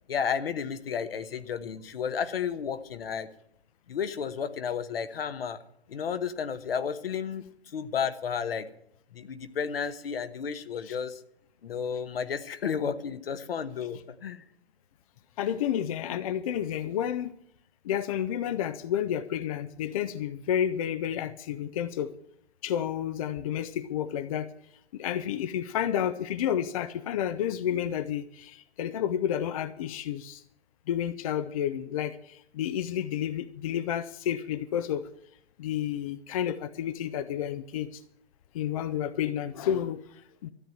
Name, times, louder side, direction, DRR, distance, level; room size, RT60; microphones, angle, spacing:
voice 1, 0.1-3.3 3.9-5.6 5.9-7.4 7.7-8.7 9.1-11.2 11.6-14.4, left 7 dB, 60° left, 11 dB, 1.2 m, -32 dB
voice 2, 15.4-17.3 17.8-22.1 22.6-24.5 24.9-30.4 30.9-35.0 35.6-38.0 38.5-40.5, left 10 dB, 35° left, 13 dB, 0.5 m, -30 dB
13.5 x 9.0 x 8.0 m, 0.74 s
figure-of-eight pair, 125°, 33 cm